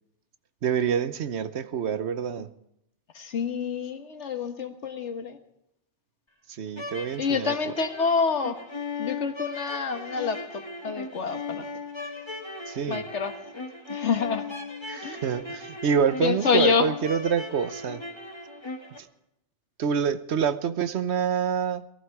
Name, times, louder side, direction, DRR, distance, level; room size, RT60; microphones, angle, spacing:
voice 1, 0.6-2.5 6.5-7.5 12.7-13.0 14.9-18.0 19.0-19.1 19.8-21.9, right 7 dB, 70° right, 12 dB, 1.1 m, -27 dB
voice 2, 3.1-5.4 7.2-8.6 9.0-11.7 12.9-13.3 13.9-14.5 15.0-15.2 16.2-16.9, left 5 dB, 90° left, 7 dB, 1.6 m, -27 dB
sound 1, 6.7-19.0, left 3 dB, 25° left, 1.6 m, -37 dB
18.5 x 15.0 x 4.7 m, 0.82 s
omnidirectional pair, 1.2 m